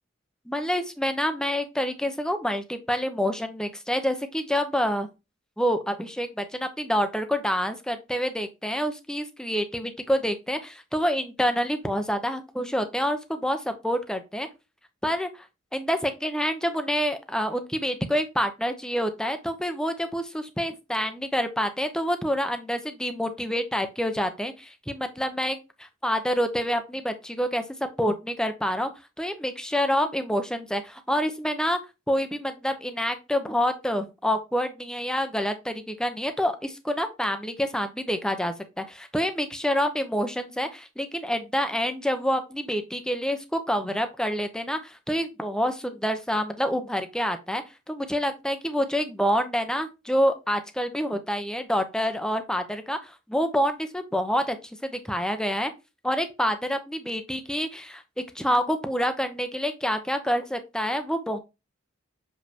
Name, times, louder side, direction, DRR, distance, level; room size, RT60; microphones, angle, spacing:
voice 1, 0.5-5.1 5.6-14.5 15.0-15.5 15.7-28.9 29.2-31.8 32.1-54.6 54.8-55.7 56.0-58.0 58.3-61.4, equal, 5° left, 8 dB, 0.8 m, -27 dB
6.7 x 5.3 x 2.8 m, 0.25 s
head